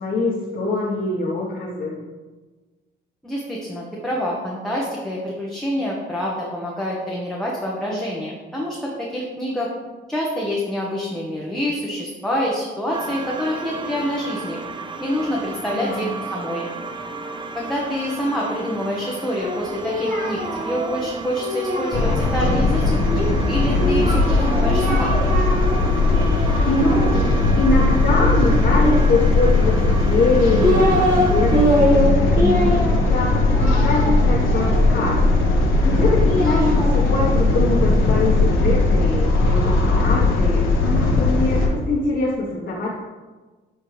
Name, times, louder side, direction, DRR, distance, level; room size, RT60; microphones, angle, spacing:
voice 1, 0.0-2.0 15.7-16.1 26.4-27.1 27.6-35.2 35.8-42.9, left 2 dB, 55° left, -6 dB, 1.4 m, -24 dB
voice 2, 3.2-9.7 10.1-14.6 15.0-16.7 17.5-25.1, equal, ahead, -5 dB, 1.1 m, -26 dB
sound 1, 12.9-31.6, right 4 dB, 25° right, 0.6 m, -34 dB
Singing, 19.4-22.6 23.8-25.8 26.1-27.3 28.7-29.7 30.3-31.3 31.5-35.2 36.0-38.2, equal, 40° right, 2.0 m, -24 dB
sound 2, 21.9-41.7, left 2 dB, 75° left, 1.4 m, -18 dB
7.5 x 4.2 x 3.3 m, 1.3 s
cardioid pair, 90°, 20 cm